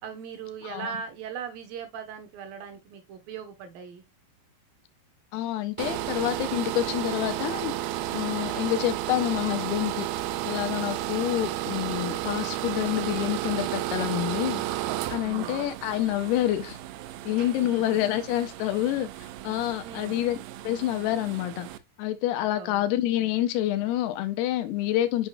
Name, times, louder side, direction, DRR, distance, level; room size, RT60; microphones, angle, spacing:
voice 1, 0.0-4.0 15.2-15.6 17.6-17.8 19.8-20.2 22.5-22.8, right 7 dB, 70° right, 2.8 m, -39 dB
voice 2, 0.6-0.9 5.3-7.7 8.1-10.1 10.5-14.6 15.1-16.8 17.3-19.1 19.4-20.4 20.6-21.7 22.0-25.3, left 13 dB, 85° left, 2.9 m, -27 dB
sound 1, 5.8-21.8, right 13 dB, 85° right, 2.6 m, -33 dB
7.4 x 7.1 x 2.4 m
omnidirectional pair, 4.5 m